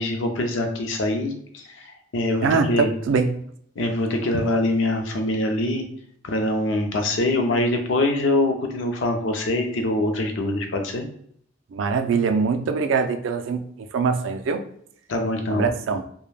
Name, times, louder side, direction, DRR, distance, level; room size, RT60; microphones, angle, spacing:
voice 1, 0.0-2.9 3.8-5.8 6.2-11.1 15.1-15.7, left 1 dB, 75° left, 4 dB, 0.5 m, -24 dB
voice 2, 2.4-3.4 11.7-14.6 15.5-16.0, right 5 dB, 75° right, 7 dB, 0.3 m, -23 dB
2.3 x 2.1 x 3.2 m, 0.66 s
head